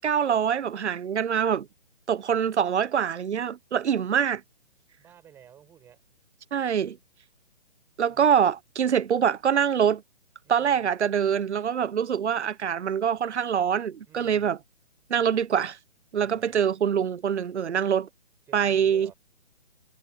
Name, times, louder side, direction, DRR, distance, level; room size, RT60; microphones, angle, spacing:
voice 1, 0.0-1.7 2.1-4.4 6.5-7.0 8.0-10.0 10.5-14.6 15.1-15.8 16.1-18.1 18.5-19.1, right 8 dB, 70° right, 0.8 m, -24 dB
voice 2, 5.0-6.0 8.1-8.4 10.4-10.9 14.1-14.5 16.1-16.7 18.5-19.1, right 9 dB, 5° right, 6.7 m, -53 dB
hypercardioid pair, 175°, 35 cm